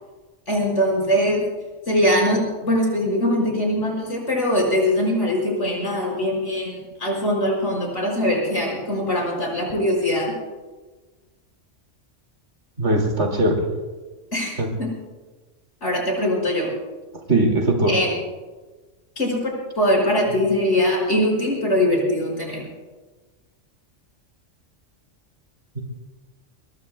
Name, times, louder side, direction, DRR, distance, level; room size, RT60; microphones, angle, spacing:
voice 1, 0.5-1.5 1.9-10.3 14.3-14.9 15.8-16.7 17.9-18.1 19.2-22.6, left 1 dB, 70° left, -2 dB, 5.4 m, -22 dB
voice 2, 12.8-13.7 14.6-14.7 17.3-17.9 25.8-25.9, right 1 dB, 65° right, 2 dB, 2.6 m, -20 dB
22.0 x 21.5 x 2.2 m, 1.3 s
omnidirectional pair, 1.3 m